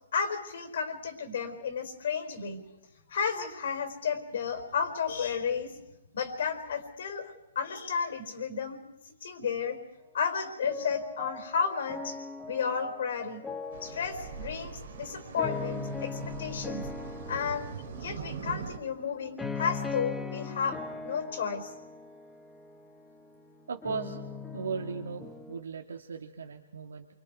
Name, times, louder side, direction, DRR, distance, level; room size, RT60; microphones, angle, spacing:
voice 1, 0.1-2.6 3.1-5.7 6.1-8.8 9.0-9.8 10.1-12.2 12.5-13.5 13.8-16.9 17.3-17.7 18.0-21.7, left 6 dB, 60° left, 8 dB, 4.3 m, -32 dB
sound 1, 10.6-25.6, left 4 dB, 5° left, 1.4 m, -40 dB
sound 2, 13.7-18.8, right 6 dB, 60° right, 2.6 m, -42 dB
voice 2, 23.7-24.2 24.5-27.1, right 5 dB, 85° right, 3 dB, 2.0 m, -37 dB
28.5 x 25.0 x 4.7 m, 0.97 s
hypercardioid pair, 150°, 0 cm